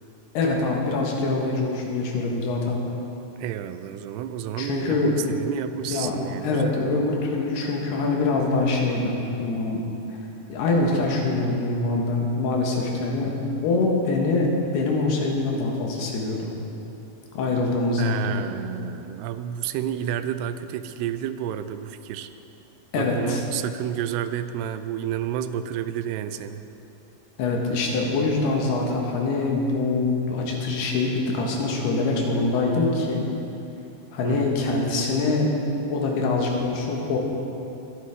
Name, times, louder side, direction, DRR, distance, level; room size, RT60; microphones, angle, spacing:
voice 1, 0.4-2.8 4.6-5.2 5.9-6.1 6.4-9.8 10.5-13.4 13.6-14.5 14.7-16.5 17.4-18.4 22.9-23.4 27.4-33.3 34.1-35.5 35.9-37.2, left 3 dB, 85° left, 0 dB, 3.5 m, -24 dB
voice 2, 3.4-6.7 18.0-22.3 23.0-26.6 34.2-34.5, right 10 dB, 90° right, 11 dB, 2.7 m, -30 dB
21.5 x 10.0 x 3.7 m, 2.9 s
omnidirectional pair, 4.6 m